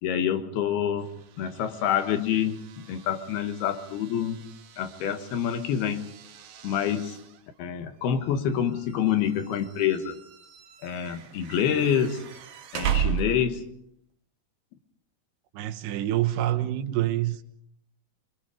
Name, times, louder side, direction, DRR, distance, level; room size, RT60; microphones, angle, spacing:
voice 1, 0.0-4.4 4.8-6.1 6.6-7.2 7.6-10.2 10.8-12.3 12.7-13.7, left 8 dB, 75° left, 3.3 m, -27 dB
sound 1, 1.0-13.8, right 10 dB, 70° right, 3.0 m, -37 dB
voice 2, 15.5-17.4, right 14 dB, 90° right, 3.3 m, -26 dB
25.0 x 24.0 x 5.0 m
omnidirectional pair, 4.6 m